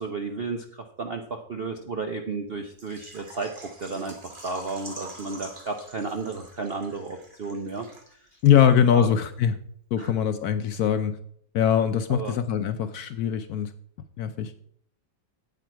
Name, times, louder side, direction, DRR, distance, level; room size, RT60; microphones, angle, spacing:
voice 1, 0.0-3.5 3.8-9.1 10.0-10.2 12.1-12.4, right 4 dB, 60° right, 5 dB, 0.6 m, -33 dB
Water / Liquid, 2.8-8.4 8.6-8.7 9.2-9.3, right 1 dB, 30° right, 1.7 m, -45 dB
voice 2, 8.4-9.6 9.9-11.2 11.5-13.7 14.2-14.5, left 9 dB, 70° left, 9 dB, 1.0 m, -22 dB
9.0 x 8.5 x 4.5 m, 0.65 s
omnidirectional pair, 2.0 m